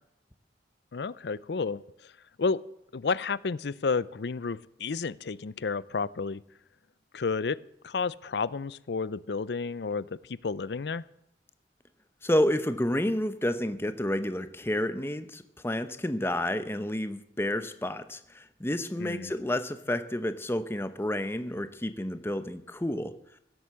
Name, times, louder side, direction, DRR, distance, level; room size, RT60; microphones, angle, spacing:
voice 1, 0.9-2.1 2.4-2.6 2.9-6.4 7.1-11.0 19.0-19.3, left 4 dB, 65° left, 19 dB, 0.5 m, -31 dB
voice 2, 12.2-23.1, left 1 dB, 15° left, 11 dB, 0.8 m, -30 dB
16.5 x 8.0 x 7.5 m, 0.78 s
head